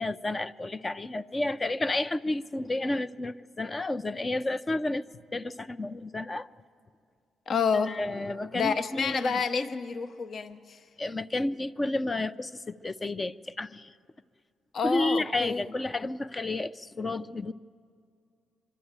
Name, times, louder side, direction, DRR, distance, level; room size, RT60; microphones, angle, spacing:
voice 1, 0.0-5.0 5.3-6.5 7.9-9.3 11.0-13.9 14.8-17.5, left 2 dB, 25° left, 13 dB, 0.4 m, -31 dB
voice 2, 7.5-8.0 8.5-10.8 14.7-15.6, left 5 dB, 55° left, 9 dB, 0.7 m, -29 dB
24.5 x 12.0 x 8.8 m, 2.4 s
cardioid pair, 90°, 0 cm